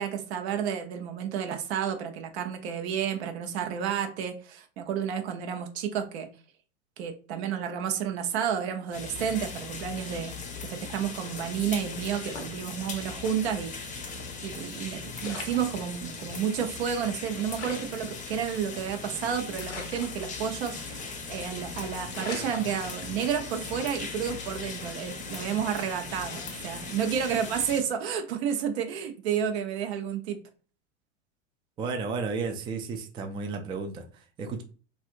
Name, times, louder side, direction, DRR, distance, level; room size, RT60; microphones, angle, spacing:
voice 1, 0.0-6.3 7.0-14.0 14.4-30.4, right 8 dB, 60° right, 0.8 m, -31 dB
sound 1, 8.9-27.8, left 4 dB, 20° left, 0.7 m, -39 dB
sound 2, 12.1-13.3 13.7-13.8 14.8-14.9 15.1-16.3 16.8-16.9 17.1-17.2 17.5-19.1 19.6-20.8 21.1-21.4 21.7-21.8 22.1-23.5 23.9-24.3, left 4 dB, 90° left, 0.9 m, -42 dB
voice 2, 31.8-34.6, right 4 dB, 15° right, 0.3 m, -33 dB
3.3 x 2.7 x 2.5 m
hypercardioid pair, 95°, 36 cm